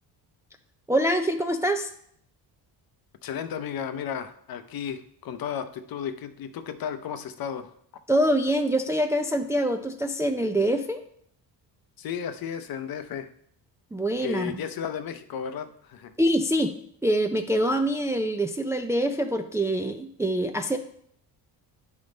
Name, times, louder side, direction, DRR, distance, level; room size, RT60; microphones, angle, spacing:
voice 1, 0.9-1.9 8.1-11.0 13.9-14.5 16.2-16.7 17.0-20.8, right 1 dB, 5° right, 6 dB, 0.3 m, -25 dB
voice 2, 3.2-7.7 12.0-13.3 14.2-16.1, left 8 dB, 55° left, 10 dB, 0.7 m, -34 dB
9.6 x 3.6 x 3.9 m, 0.67 s
cardioid pair, 105°, 42 cm